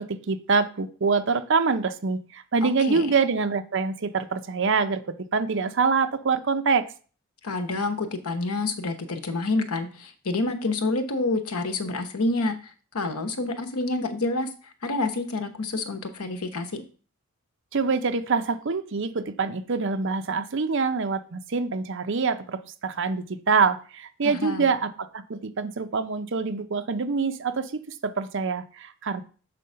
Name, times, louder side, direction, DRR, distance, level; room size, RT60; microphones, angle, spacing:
voice 1, 0.0-6.9 17.7-29.2, right 4 dB, 55° right, 10 dB, 0.6 m, -25 dB
voice 2, 2.6-3.1 7.4-14.5 14.8-16.8 24.2-24.7, left 2 dB, 80° left, 6 dB, 1.0 m, -28 dB
6.9 x 3.8 x 5.6 m, 0.39 s
head